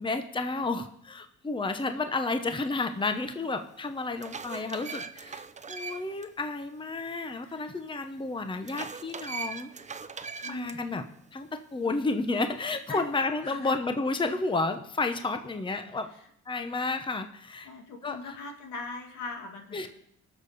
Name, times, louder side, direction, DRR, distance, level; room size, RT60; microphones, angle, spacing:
voice 1, 0.0-5.4 5.7-9.7 10.5-11.1 11.3-16.1 16.5-17.7 18.0-18.4 19.7-19.9, left 3 dB, 15° left, 8 dB, 0.9 m, -31 dB
sound 1, 3.3-3.4 3.9-6.3 6.6-6.7 8.6-10.8, right 5 dB, 25° right, 0.6 m, -40 dB
voice 2, 10.4-11.0 12.9-13.0 13.4-13.8 17.6-19.9, left 3 dB, 80° left, 3 dB, 2.0 m, -40 dB
19.5 x 6.7 x 4.1 m, 0.70 s
cardioid pair, 90°, 30 cm